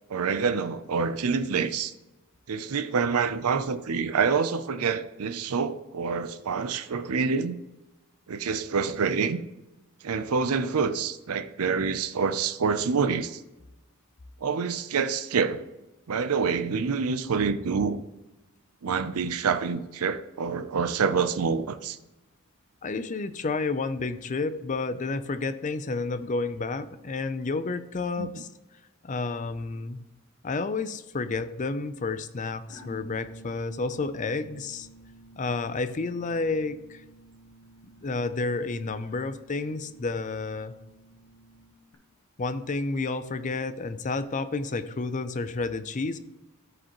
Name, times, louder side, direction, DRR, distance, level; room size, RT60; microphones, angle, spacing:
voice 1, 0.1-1.9 2.5-7.5 8.3-9.4 10.0-13.4 14.4-15.7 16.1-18.0 18.8-22.0 28.2-28.3, right 5 dB, 85° right, 0.6 m, -27 dB
voice 2, 22.8-28.5 29.0-30.0 30.4-34.9 35.4-37.0 38.0-40.7 42.4-46.2, left 3 dB, 35° left, 0.5 m, -30 dB
sound 1, 32.7-41.9, equal, 75° left, 1.3 m, -51 dB
13.5 x 5.1 x 3.0 m
head